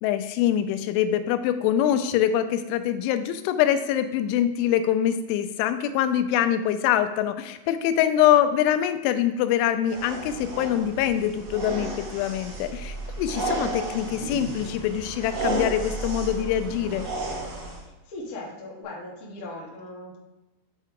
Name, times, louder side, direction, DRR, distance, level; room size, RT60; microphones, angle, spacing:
voice 1, 0.0-17.1, left 10 dB, 90° left, 10 dB, 3.0 m, -24 dB
sound 1, 9.9-17.8, right 2 dB, 70° right, 4.9 m, -33 dB
voice 2, 17.6-20.2, left 2 dB, 65° left, -3 dB, 1.5 m, -39 dB
10.5 x 4.5 x 3.7 m, 1.0 s
omnidirectional pair, 5.4 m